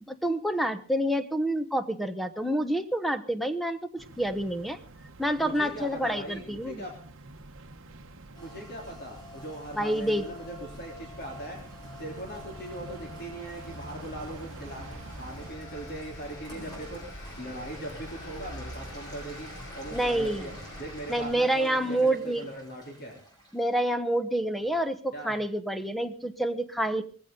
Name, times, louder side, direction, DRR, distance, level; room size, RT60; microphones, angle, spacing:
voice 1, 0.1-4.8 5.2-6.8 9.8-10.2 19.9-20.5 21.1-22.4 23.5-27.0, right 1 dB, ahead, 9 dB, 1.0 m, -28 dB
sound 1, 4.0-15.5, right 2 dB, 60° right, 1.1 m, -48 dB
voice 2, 5.4-6.9 8.4-11.6 12.0-17.1 17.4-20.5 20.8-23.1 24.6-24.7 25.1-25.4, right 1 dB, 45° left, 0 dB, 3.4 m, -40 dB
sound 2, 7.2-21.3, equal, 70° left, 6.0 m, -48 dB
Rain, 8.3-23.8, equal, 20° left, 6.0 m, -47 dB
19.5 x 15.5 x 3.8 m, 0.42 s
head